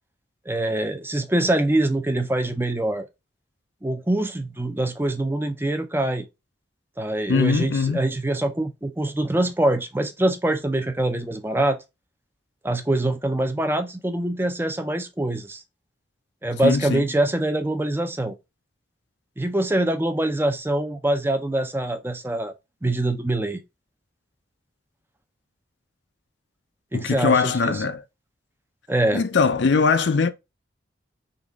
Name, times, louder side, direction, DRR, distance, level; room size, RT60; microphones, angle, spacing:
voice 1, 0.5-3.1 3.8-6.3 7.0-11.8 12.6-15.6 16.4-18.3 19.4-22.5 22.8-23.6 26.9-27.8 28.9-29.2, right 1 dB, 10° right, 0.5 m, -24 dB
voice 2, 7.3-8.0 16.6-17.1 26.9-28.0 29.1-30.3, left 5 dB, 70° left, 0.5 m, -21 dB
3.9 x 3.0 x 3.4 m
head